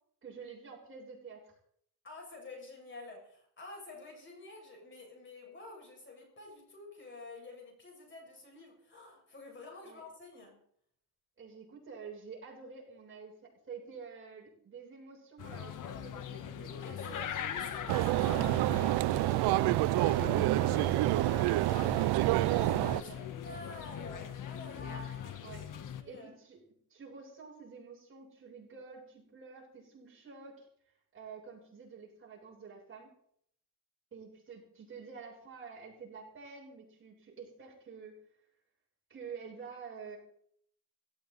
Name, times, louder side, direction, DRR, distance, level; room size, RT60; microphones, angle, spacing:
voice 1, 0.2-1.5 9.8-10.0 11.4-17.3 19.2-21.5 22.9-23.3 24.7-25.7 26.0-26.6 26.9-30.7 31.1-33.1 34.1-38.2 39.1-40.2, right 5 dB, 35° right, -2 dB, 7.6 m, -49 dB
voice 2, 2.0-10.5 16.8-18.7 21.6-26.3, left 2 dB, 30° left, 1 dB, 6.4 m, -49 dB
sound 1, 15.4-26.0, left 9 dB, 55° left, 1.4 m, -41 dB
sound 2, 17.9-23.0, right 18 dB, 85° right, 0.6 m, -27 dB
18.5 x 17.5 x 4.1 m, 0.65 s
cardioid pair, 140°, 38 cm